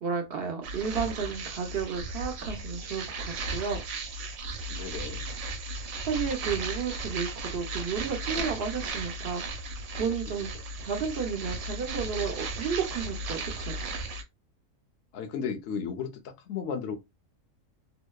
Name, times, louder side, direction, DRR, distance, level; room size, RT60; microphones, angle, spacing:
voice 1, 0.0-3.8 6.0-9.7 9.9-10.5 10.8-13.8, right 6 dB, 60° right, 0.6 m, -32 dB
sound 1, 0.6-14.2, right 2 dB, 90° right, 1.0 m, -36 dB
voice 2, 4.7-5.2 15.1-17.0, left 6 dB, 65° left, 0.7 m, -34 dB
2.7 x 2.0 x 2.2 m
omnidirectional pair, 1.4 m